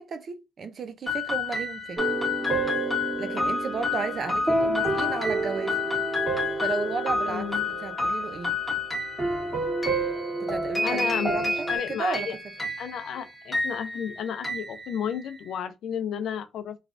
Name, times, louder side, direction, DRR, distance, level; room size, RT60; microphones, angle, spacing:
voice 1, 0.0-2.0 3.2-5.8 6.6-8.5 10.4-12.3, right 4 dB, 50° right, 0.5 m, -33 dB
sound 1, 1.1-15.5, left 4 dB, 10° left, 1.5 m, -31 dB
sound 2, 2.0-8.6 9.2-11.8, right 2 dB, 15° right, 1.6 m, -30 dB
voice 2, 7.2-7.7 10.8-12.4 12.8-16.8, left 8 dB, 75° left, 0.5 m, -32 dB
3.2 x 2.3 x 2.5 m
cardioid pair, 90°, 0 cm